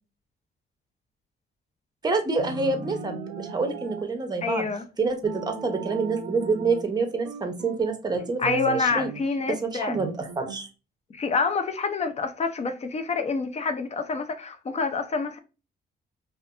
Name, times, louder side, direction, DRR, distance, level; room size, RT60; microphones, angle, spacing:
voice 1, 2.0-4.7 5.0-9.1 9.5-10.7, right 4 dB, 20° right, 0.6 m, -27 dB
sound 1, 2.4-4.1 5.2-6.9 7.3-9.3 9.9-10.6, right 5 dB, 85° right, 0.5 m, -37 dB
voice 2, 4.4-4.8 8.4-10.0 11.1-15.4, left 4 dB, 35° left, 0.5 m, -27 dB
2.5 x 2.4 x 2.2 m
cardioid pair, 90°, 20 cm